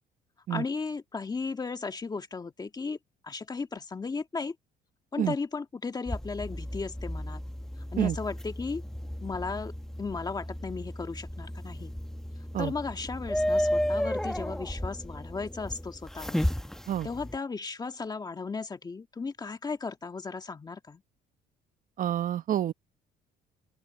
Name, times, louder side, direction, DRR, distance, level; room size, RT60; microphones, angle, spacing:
voice 1, 0.5-3.0 3.2-4.5 5.1-7.4 7.9-8.8 9.2-9.7 10.0-11.9 12.6-16.4 17.0-21.0, left 4 dB, 25° left, 1.7 m, -35 dB
sound 1, 6.1-17.4, equal, 5° left, 1.1 m, -33 dB
voice 2, 22.0-22.7, right 11 dB, 55° right, 1.0 m, -28 dB
open air
cardioid pair, 110°, 17 cm